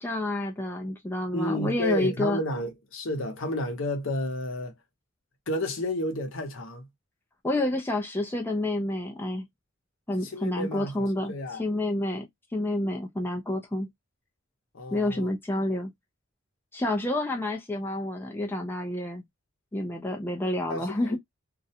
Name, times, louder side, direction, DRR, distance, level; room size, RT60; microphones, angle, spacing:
voice 1, 0.0-2.4 7.4-9.5 10.1-11.3 11.6-12.3 12.5-13.9 14.9-15.9 16.7-19.2 19.7-21.2, left 1 dB, 10° left, 0.3 m, -29 dB
voice 2, 1.3-4.7 5.5-6.9 10.2-11.7 14.7-15.3 20.7-21.2, left 1 dB, 60° left, 0.7 m, -31 dB
2.4 x 2.1 x 2.7 m
head